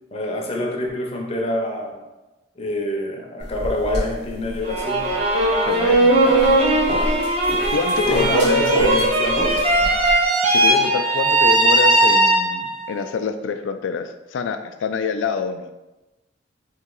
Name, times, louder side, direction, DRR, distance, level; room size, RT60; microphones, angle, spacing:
voice 1, 0.1-2.0 2.6-5.2 8.0-9.5, left 1 dB, 35° left, 1 dB, 0.6 m, -26 dB
sound 1, 3.4-10.1, equal, 65° right, 1.4 m, -30 dB
sound 2, 4.6-12.8, right 2 dB, 35° right, 0.6 m, -18 dB
voice 2, 5.6-6.2 7.7-8.7 10.5-15.7, left 5 dB, 90° left, 9 dB, 0.3 m, -26 dB
3.1 x 2.7 x 3.7 m, 1.0 s
head